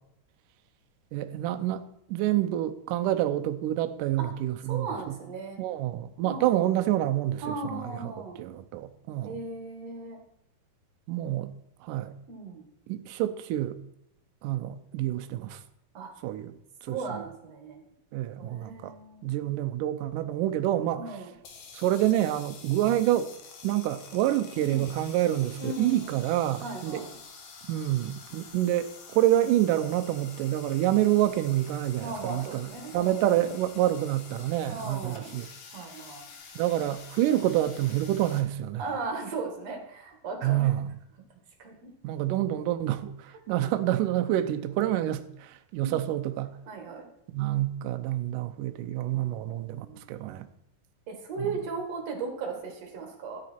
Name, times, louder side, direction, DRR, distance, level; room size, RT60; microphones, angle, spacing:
voice 1, 1.1-5.2 5.6-8.1 8.4-9.4 11.1-11.5 11.8-12.1 12.9-13.8 14.4-15.6 16.2-16.5 16.8-17.2 18.1-18.9 19.2-21.0 21.7-23.3 23.6-27.0 27.6-35.5 36.6-38.8 40.4-40.9 42.0-46.5 47.3-50.5, right 13 dB, 80° right, 9 dB, 2.0 m, -27 dB
voice 2, 4.7-5.6 6.2-6.7 7.4-8.4 9.2-10.2 12.3-12.7 15.9-16.1 16.9-17.8 18.4-19.4 20.9-21.3 24.6-24.9 25.6-26.2 26.6-27.1 32.0-33.4 34.7-35.4 35.7-36.3 38.8-40.7 41.6-41.9 43.5-43.6 45.8-46.0 46.7-47.1 49.1-50.0 51.1-53.4, right 3 dB, 50° right, 3 dB, 2.5 m, -37 dB
sound 1, 21.3-38.4, left 5 dB, 65° left, 2.5 m, -48 dB
12.5 x 9.5 x 4.4 m, 0.76 s
omnidirectional pair, 4.4 m